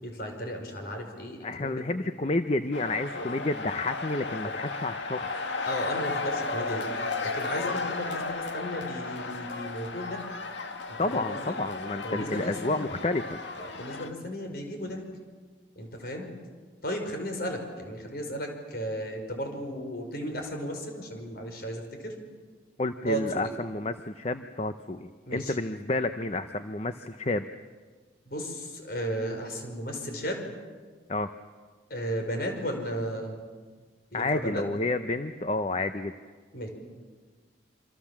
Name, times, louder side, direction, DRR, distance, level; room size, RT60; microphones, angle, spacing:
voice 1, 0.0-1.8 3.1-3.3 4.4-4.5 5.6-6.9 7.2-10.2 10.9-11.6 12.0-12.9 13.6-15.0 15.8-16.3 16.8-22.1 23.1-23.5 25.3-25.6 28.3-30.4 31.9-33.4 34.1-34.6 36.5-36.7, equal, 55° left, 4 dB, 5.4 m, -35 dB
voice 2, 1.4-5.3 11.0-13.4 22.8-27.4 31.1-31.3 34.1-36.1, left 2 dB, 35° left, 9 dB, 0.7 m, -30 dB
sound 1, 2.7-14.1, left 3 dB, 80° left, 2.0 m, -34 dB
27.0 x 26.0 x 7.4 m, 1.5 s
head